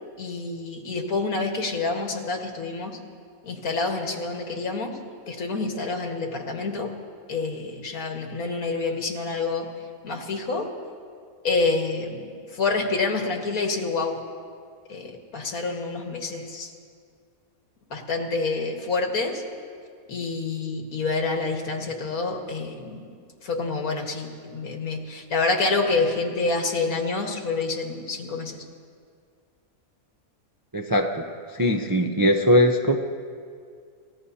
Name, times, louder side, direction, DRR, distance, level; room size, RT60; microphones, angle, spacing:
voice 1, 0.2-3.0 3.4-5.0 5.3-6.9 7.3-9.7 10.0-10.7 11.4-14.2 14.9-16.7 17.9-19.4 20.1-23.1 23.4-28.6, left 3 dB, 80° left, 2 dB, 2.0 m, -27 dB
voice 2, 30.7-31.2 31.5-33.0, equal, 30° right, 3 dB, 0.3 m, -20 dB
28.5 x 15.0 x 2.8 m, 2.2 s
omnidirectional pair, 1.5 m